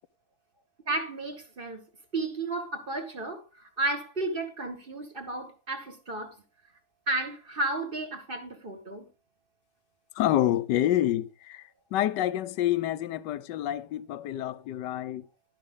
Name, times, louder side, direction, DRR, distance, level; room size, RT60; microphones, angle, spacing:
voice 1, 0.9-1.8 2.1-6.3 7.1-9.0, right 2 dB, 30° right, 1.8 m, -33 dB
voice 2, 10.1-15.3, left 12 dB, 75° left, 1.3 m, -28 dB
12.0 x 10.5 x 3.7 m
omnidirectional pair, 2.0 m